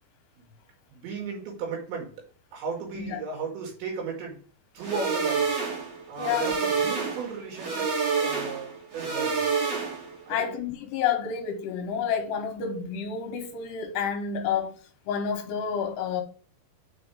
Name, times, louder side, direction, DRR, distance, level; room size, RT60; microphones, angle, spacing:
voice 1, 0.9-2.1 2.5-4.4 4.7-5.5 6.1-9.5 10.3-10.5, right 5 dB, 75° right, 4.5 m, -35 dB
sound 1, 4.8-10.2, right 5 dB, 45° right, 2.4 m, -28 dB
voice 2, 6.2-6.6 10.3-14.8 15.1-16.2, left 7 dB, 75° left, 2.8 m, -29 dB
9.0 x 4.8 x 3.5 m
omnidirectional pair, 5.3 m